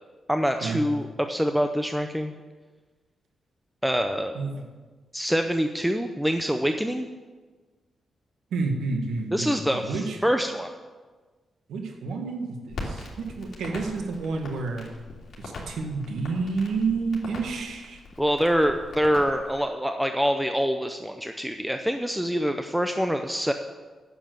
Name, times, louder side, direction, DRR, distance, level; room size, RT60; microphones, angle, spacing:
voice 1, 0.3-2.3 3.8-4.3 5.1-7.1 9.3-10.7 18.2-23.5, equal, ahead, 6 dB, 0.6 m, -25 dB
voice 2, 8.5-10.2 11.7-14.9 15.4-18.0, right 4 dB, 90° right, 3 dB, 1.7 m, -30 dB
Crackle, 12.7-19.7, left 2 dB, 55° left, 2.9 m, -41 dB
9.9 x 7.3 x 7.8 m, 1.4 s
cardioid pair, 110°, 0 cm